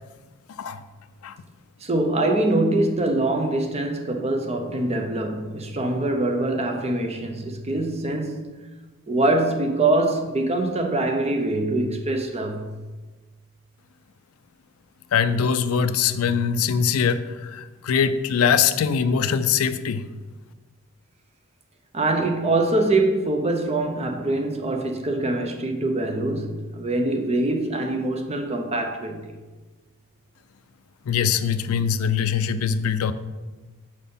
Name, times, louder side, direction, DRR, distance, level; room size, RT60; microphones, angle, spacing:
voice 1, 1.8-8.5 9.1-12.8 21.9-29.3, right 2 dB, 30° right, 0.6 m, -24 dB
voice 2, 15.1-20.1 31.1-33.1, left 7 dB, 75° left, 0.4 m, -22 dB
6.4 x 4.1 x 5.4 m
head